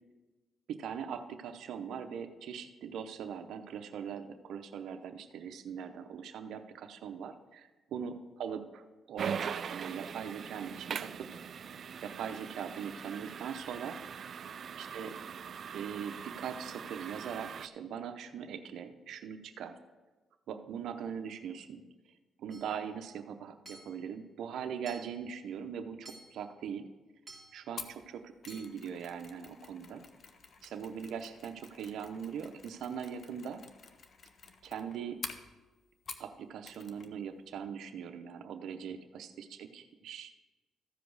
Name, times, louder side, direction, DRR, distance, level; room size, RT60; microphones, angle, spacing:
voice 1, 0.7-11.3 12.0-14.0 14.8-15.2 15.7-19.7 20.5-21.8 22.4-26.9 27.5-30.0 30.6-33.6 34.6-35.2 36.2-40.3, right 7 dB, 75° right, 7 dB, 0.7 m, -41 dB
sound 1, 9.2-17.7, right 7 dB, 55° right, 0.3 m, -41 dB
Hammer / Chink clink, 22.5-22.9 23.7-24.1 24.9-25.3 26.1-26.5 27.3-27.7 28.5-28.9, right 2 dB, 20° right, 1.9 m, -53 dB
Mechanisms, 27.8-36.4 36.7-37.1 37.4-37.5, left 5 dB, 50° left, 0.8 m, -49 dB
14.0 x 5.1 x 4.8 m, 1.2 s
cardioid pair, 90°, 0 cm